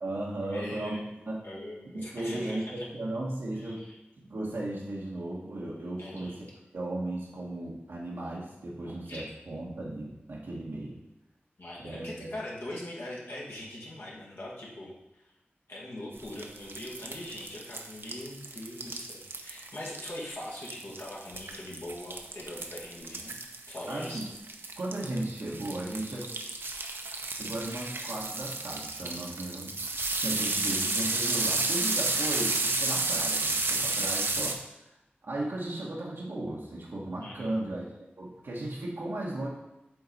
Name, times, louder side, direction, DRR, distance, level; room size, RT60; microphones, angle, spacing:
voice 1, 0.0-1.5 1.9-3.8 4.2-6.5 6.7-11.0 11.8-12.3 23.9-24.2 24.8-26.2 27.4-29.8 30.2-34.6 34.8-34.9 35.2-37.9 38.2-39.5, right 1 dB, 90° right, -5 dB, 1.2 m, -36 dB
voice 2, 0.5-1.0 1.4-2.8 3.6-4.0 6.0-6.4 9.1-9.3 11.6-15.2 15.7-23.4 23.7-24.2 37.2-37.5, left 1 dB, 75° left, -5 dB, 1.9 m, -41 dB
sound 1, 16.1-34.5, right 3 dB, 70° right, 0.7 m, -32 dB
7.5 x 3.9 x 4.1 m, 0.91 s
wide cardioid pair, 45°, 4 cm